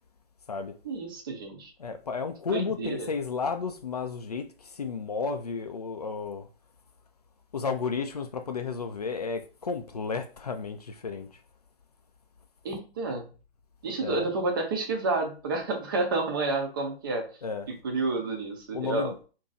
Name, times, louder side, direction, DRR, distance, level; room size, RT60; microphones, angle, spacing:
voice 1, 0.8-1.7 2.5-3.1 12.6-13.3 13.8-17.3 17.7-19.1, right 3 dB, 20° right, 0.5 m, -30 dB
voice 2, 1.8-6.5 7.5-11.3 14.0-14.3 17.4-17.7 18.7-19.1, left 5 dB, 40° left, 0.4 m, -32 dB
2.9 x 2.6 x 3.8 m
figure-of-eight pair, 140°, 32 cm